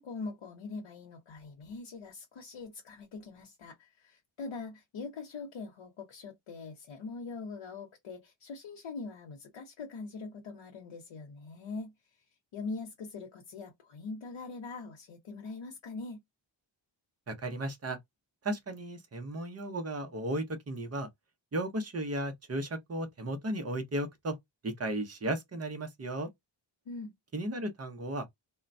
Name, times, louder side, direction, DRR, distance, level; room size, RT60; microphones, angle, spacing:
voice 1, 0.0-11.9 12.5-16.2 26.9-27.1, left 4 dB, 85° left, 0.9 m, -42 dB
voice 2, 17.3-18.0 18.4-21.1 21.5-24.4 24.6-26.3 27.3-28.3, right 1 dB, 30° right, 0.8 m, -35 dB
3.6 x 2.2 x 2.6 m
wide cardioid pair, 125°, 47 cm